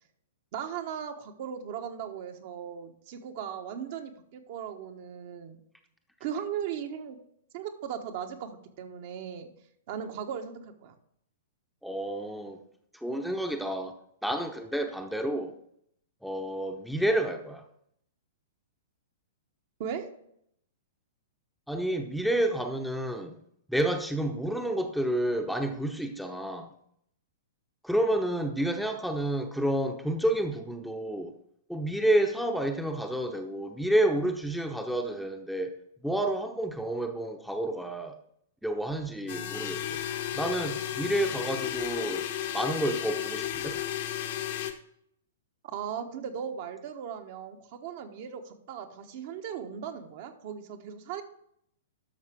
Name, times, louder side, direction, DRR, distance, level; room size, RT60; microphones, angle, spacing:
voice 1, 0.5-5.6 6.2-7.2 7.5-9.5 9.9-10.9 19.8-20.1 45.6-51.2, right 8 dB, 45° right, 5 dB, 1.2 m, -37 dB
voice 2, 11.8-12.6 12.9-13.9 14.2-15.5 16.2-17.6 21.7-23.3 23.7-26.7 27.8-31.3 31.7-35.7 36.0-38.2 38.6-40.0 40.3-42.2 42.5-43.8, right 1 dB, ahead, 4 dB, 0.9 m, -29 dB
sound 1, 39.3-44.7, left 11 dB, 50° left, 1.1 m, -33 dB
12.0 x 6.6 x 3.6 m, 0.71 s
figure-of-eight pair, 110°, 0 cm